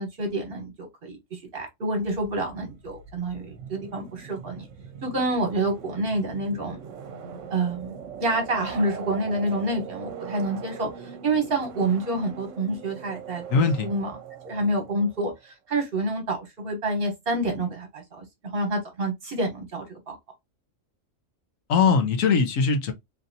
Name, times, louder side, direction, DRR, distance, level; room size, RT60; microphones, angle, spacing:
voice 1, 0.0-4.7 5.0-6.8 7.5-14.2 14.4-20.2, right 2 dB, 50° right, 1.2 m, -28 dB
sound 1, 2.0-15.4, right 7 dB, 75° right, 1.0 m, -41 dB
voice 2, 13.5-13.9 21.7-22.9, left 5 dB, 85° left, 1.1 m, -21 dB
3.3 x 2.6 x 2.6 m
omnidirectional pair, 1.3 m